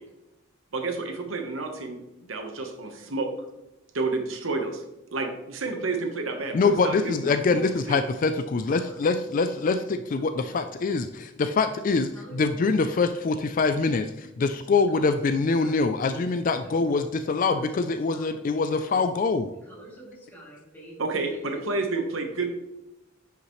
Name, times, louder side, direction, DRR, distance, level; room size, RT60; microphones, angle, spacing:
voice 1, 0.7-2.0 2.3-3.3 3.9-4.8 5.1-8.0 21.0-22.5, right 3 dB, 80° right, 4 dB, 1.2 m, -30 dB
voice 2, 6.5-19.5, left 4 dB, 40° left, 9 dB, 0.4 m, -24 dB
voice 3, 12.9-13.4 14.9-15.2 15.6-15.7 16.1-16.2 16.6-16.8 17.4-17.7 18.1-18.7 19.7-20.9, right 1 dB, 10° left, -5 dB, 2.6 m, -46 dB
9.7 x 5.8 x 3.1 m, 0.94 s
head